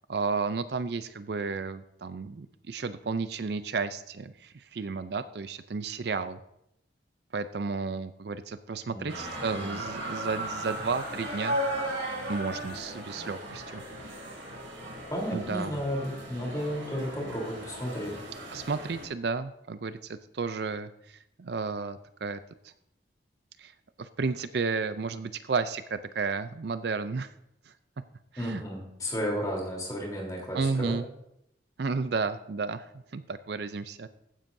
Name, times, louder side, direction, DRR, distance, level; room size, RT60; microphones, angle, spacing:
voice 1, 0.1-6.4 7.3-11.6 12.3-13.8 15.3-15.8 18.5-22.4 22.6-22.7 23.6-23.7 24.0-27.3 27.7-27.8 28.3-28.6 30.5-31.1 31.8-32.9 33.1-34.1, right 4 dB, 60° right, 12 dB, 0.5 m, -32 dB
voice 2, 8.8-9.8 15.1-18.2 28.4-31.0, equal, 20° left, -2 dB, 3.4 m, -33 dB
sound 1, 9.1-19.1, right 1 dB, 85° right, 2.7 m, -36 dB
15.0 x 9.9 x 2.7 m, 0.77 s
head